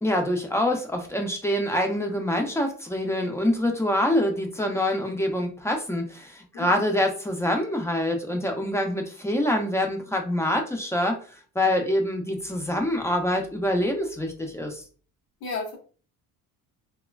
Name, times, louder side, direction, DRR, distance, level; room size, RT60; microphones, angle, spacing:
voice 1, 0.0-14.8, left 1 dB, 10° left, 3 dB, 0.4 m, -25 dB
voice 2, 6.5-6.9 15.4-15.8, left 3 dB, 85° left, 1 dB, 1.2 m, -33 dB
3.2 x 2.1 x 2.2 m, 0.38 s
cardioid pair, 130°, 36 cm